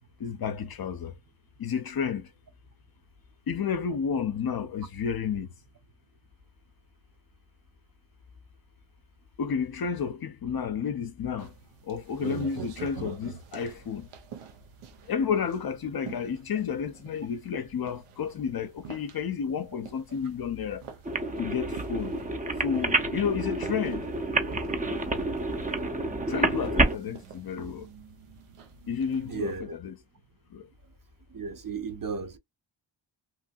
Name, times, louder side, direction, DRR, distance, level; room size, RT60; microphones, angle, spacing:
voice 1, 0.2-1.2 1.6-2.3 3.5-5.5 9.4-11.5 11.8-14.1 15.1-20.8 21.4-22.2 22.6-24.1 26.3-27.9 28.9-30.0 30.5-30.7, left 7 dB, 50° left, 0.6 m, -31 dB
Quiet footsteps indoors rubber shoes, 11.4-29.6, right 8 dB, 90° right, 0.8 m, -47 dB
sound 1, 21.1-27.0, right 2 dB, 15° right, 0.6 m, -28 dB
voice 2, 29.3-29.8 31.3-32.4, right 4 dB, 40° right, 0.9 m, -34 dB
3.0 x 2.6 x 2.3 m
cardioid pair, 90°, 49 cm